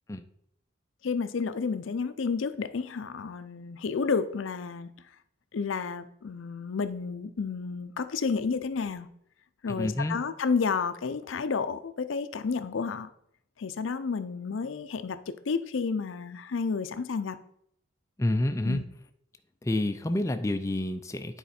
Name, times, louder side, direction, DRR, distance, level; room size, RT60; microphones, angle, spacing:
voice 1, 1.0-4.9 5.5-9.1 9.6-13.1 13.6-17.4 18.6-18.8, left 5 dB, 90° left, 11 dB, 0.5 m, -31 dB
voice 2, 9.8-10.2 18.2-18.8 19.6-21.4, left 1 dB, 15° left, 7 dB, 0.4 m, -28 dB
9.4 x 4.2 x 4.3 m, 0.71 s
head